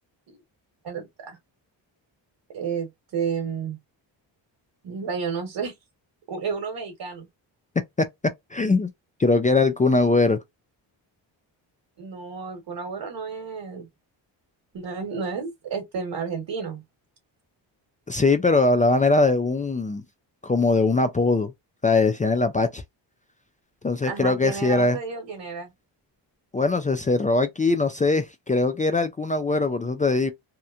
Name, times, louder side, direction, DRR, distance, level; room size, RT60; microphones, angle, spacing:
voice 1, 0.8-1.4 2.5-3.8 4.8-5.7 6.3-7.3 12.0-13.9 14.7-16.8 24.1-25.7, right 6 dB, 60° right, 1.2 m, -31 dB
voice 2, 8.5-8.9 9.2-10.4 18.1-20.0 20.4-21.5 21.8-22.8 23.8-25.0 26.5-30.3, left 3 dB, 20° left, 0.3 m, -21 dB
2.9 x 2.1 x 2.4 m
cardioid pair, 80°, 46 cm